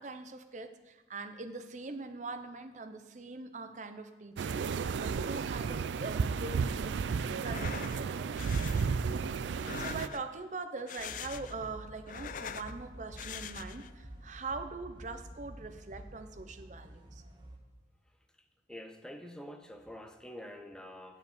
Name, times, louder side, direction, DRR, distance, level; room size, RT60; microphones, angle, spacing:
voice 1, 0.0-8.4 9.2-17.2, right 3 dB, 40° right, 8 dB, 0.7 m, -43 dB
sound 1, 4.4-10.1, right 5 dB, 80° right, 0.3 m, -33 dB
sound 2, 7.4-8.0 8.4-8.9 9.5-10.4 10.8-11.6 11.9-12.7 13.2-13.9, left 8 dB, 45° left, 0.3 m, -43 dB
sound 3, 11.0-17.6, right 1 dB, 25° right, 1.0 m, -49 dB
voice 2, 18.7-21.2, left 1 dB, 5° left, 5 dB, 0.6 m, -46 dB
9.2 x 5.4 x 7.8 m, 1.1 s
head